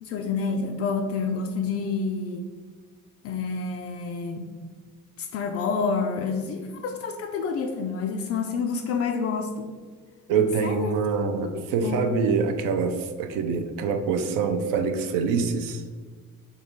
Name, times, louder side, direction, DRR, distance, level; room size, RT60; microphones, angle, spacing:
voice 1, 0.0-2.5 3.2-4.5 5.2-9.7 10.6-10.9 11.4-12.2, left 5 dB, 35° left, 5 dB, 0.4 m, -28 dB
voice 2, 10.3-15.8, right 5 dB, 45° right, 7 dB, 0.5 m, -25 dB
4.1 x 2.8 x 3.4 m, 1.5 s
figure-of-eight pair, 55°, 46 cm